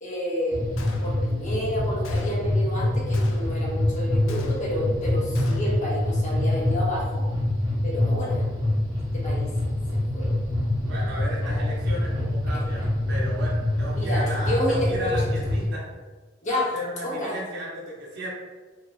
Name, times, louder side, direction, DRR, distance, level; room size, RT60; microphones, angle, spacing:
voice 1, 0.0-0.6 1.0-7.3 7.8-8.5 9.1-9.5 10.1-10.4 11.4-11.7 12.5-12.6 13.9-15.1 16.4-16.7 17.0-17.4, equal, 40° left, -4 dB, 0.7 m, -30 dB
sound 1, 0.5-15.7, left 1 dB, 20° right, 0.7 m, -25 dB
Gunshot gunfire, 0.8-1.5 2.0-2.6 3.1-3.7 4.3-4.9 5.3-5.9, left 3 dB, 75° left, 0.4 m, -43 dB
voice 2, 10.9-15.9 16.5-18.3, right 1 dB, 60° right, -4 dB, 0.8 m, -35 dB
2.5 x 2.3 x 3.0 m, 1.3 s
head